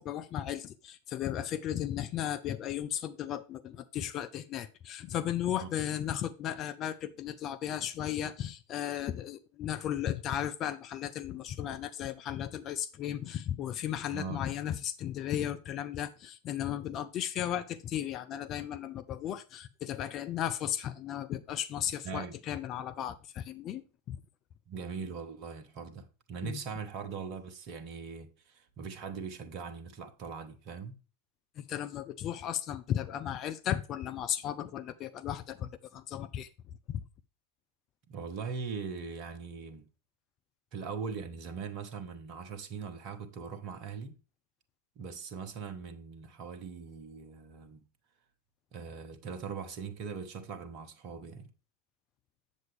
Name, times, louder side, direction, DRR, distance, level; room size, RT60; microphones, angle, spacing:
voice 1, 0.0-23.8 24.1-24.2 26.4-26.6 31.6-36.5 36.9-37.0, left 10 dB, 35° left, 0.5 m, -35 dB
voice 2, 14.1-14.4 22.0-22.4 24.7-31.0 38.1-39.8 40.7-44.2 45.0-47.9 48.7-51.5, right 5 dB, 40° right, 1.0 m, -41 dB
7.6 x 7.3 x 3.3 m
figure-of-eight pair, 90°, 0 cm